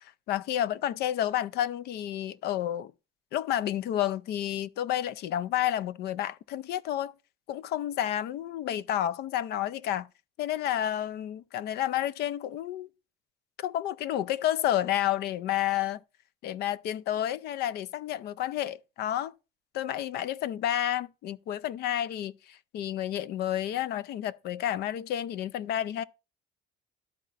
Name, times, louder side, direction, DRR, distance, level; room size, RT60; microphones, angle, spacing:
voice 1, 0.0-2.9 3.3-7.1 7.5-10.1 10.4-12.9 13.6-16.0 16.4-19.3 19.7-26.0, left 12 dB, 75° left, 0.5 m, -30 dB
12.0 x 4.1 x 3.9 m
cardioid pair, 110°, 17 cm